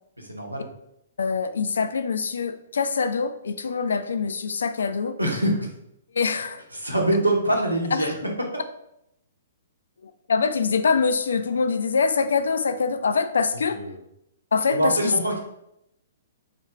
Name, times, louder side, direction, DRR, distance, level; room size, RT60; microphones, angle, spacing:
voice 1, 0.2-0.7 5.2-5.7 6.7-8.1 13.5-13.9 14.7-15.4, right 1 dB, 90° right, 0 dB, 0.9 m, -24 dB
voice 2, 1.2-5.2 6.1-6.6 7.9-8.1 10.0-13.8 14.5-15.1, left 5 dB, 65° left, 10 dB, 0.3 m, -24 dB
3.4 x 2.8 x 4.2 m, 0.80 s
figure-of-eight pair, 115°, 0 cm